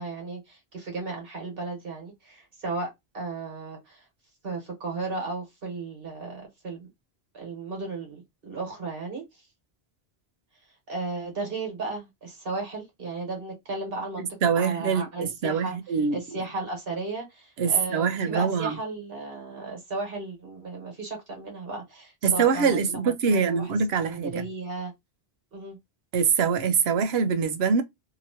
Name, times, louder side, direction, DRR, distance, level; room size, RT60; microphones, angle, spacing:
voice 1, 0.0-2.9 3.1-4.0 4.4-6.9 7.3-9.2 10.9-14.2 14.5-15.7 16.1-23.7 24.0-24.9 25.5-25.8, right 3 dB, 65° right, 1.6 m, -35 dB
voice 2, 14.4-16.2 17.6-18.8 22.2-24.4 26.1-27.8, right 6 dB, 80° right, 0.9 m, -24 dB
2.9 x 2.9 x 2.7 m
omnidirectional pair, 1.0 m